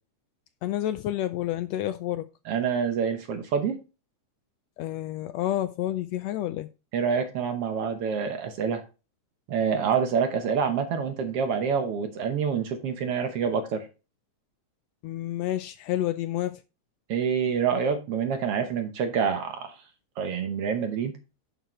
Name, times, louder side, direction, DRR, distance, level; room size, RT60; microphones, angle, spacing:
voice 1, 0.6-2.3 4.8-6.7 15.0-16.6, left 13 dB, 80° left, 1.6 m, -29 dB
voice 2, 2.5-3.8 6.9-8.8 9.5-13.9 17.1-19.7 20.2-21.1, right 6 dB, 65° right, 1.7 m, -27 dB
9.1 x 6.5 x 3.0 m
omnidirectional pair, 3.3 m